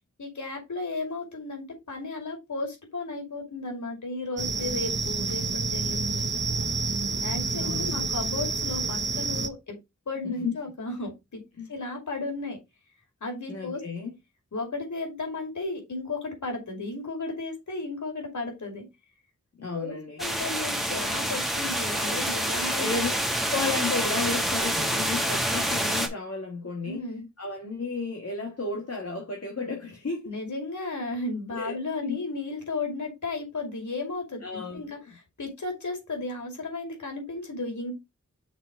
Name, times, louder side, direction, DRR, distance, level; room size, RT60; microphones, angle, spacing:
voice 1, 0.2-6.3 7.2-9.8 10.1-11.4 11.7-12.6 13.2-13.8 14.5-18.8 19.7-22.9 26.8-27.2 30.3-37.9, left 3 dB, 80° left, 2.4 m, -34 dB
sound 1, 4.4-9.5, right 4 dB, 40° right, 0.7 m, -29 dB
voice 2, 7.5-8.1 10.2-10.5 11.6-11.7 13.5-14.1 19.6-20.2 22.8-23.1 23.5-27.1 27.4-30.3 31.5-32.2 34.4-35.2, left 4 dB, 55° left, 1.7 m, -33 dB
sound 2, 20.2-26.1, right 1 dB, ahead, 1.5 m, -27 dB
6.1 x 3.9 x 4.5 m
wide cardioid pair, 75°, 29 cm